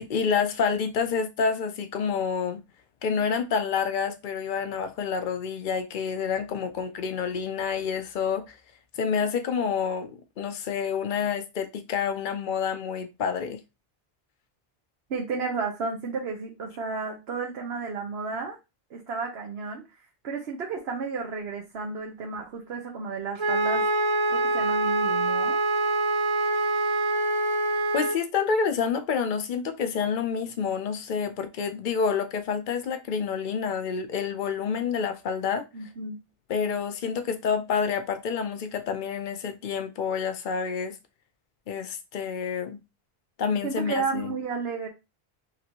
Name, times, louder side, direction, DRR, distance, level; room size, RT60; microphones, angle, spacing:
voice 1, 0.0-2.6 3.0-8.5 9.0-10.1 10.4-13.6 27.9-35.6 36.5-41.0 41.7-42.8 43.4-44.3, left 6 dB, 55° left, 0.8 m, -28 dB
voice 2, 15.1-18.6 18.9-19.8 20.2-23.8 24.3-25.6 35.7-36.2 43.6-44.9, right 4 dB, 80° right, 1.1 m, -32 dB
Wind instrument woodwind instrument, 23.4-28.2, right 2 dB, 45° right, 0.4 m, -25 dB
5.8 x 2.7 x 3.0 m
omnidirectional pair, 1.0 m